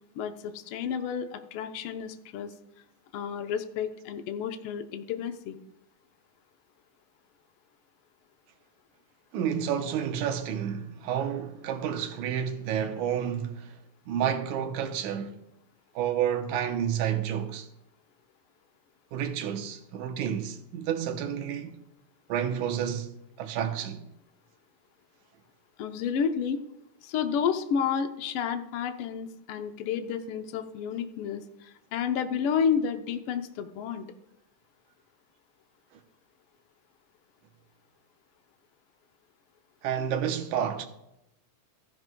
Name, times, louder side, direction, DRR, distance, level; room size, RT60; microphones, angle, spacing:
voice 1, 0.1-2.5 3.1-5.6 25.8-26.6 27.0-34.1, left 7 dB, 80° left, 1.2 m, -31 dB
voice 2, 9.3-13.8 14.1-15.4 16.0-17.7 19.1-21.8 22.3-24.0 39.8-40.9, right 9 dB, 85° right, 2.2 m, -30 dB
15.0 x 11.0 x 2.2 m
omnidirectional pair, 3.4 m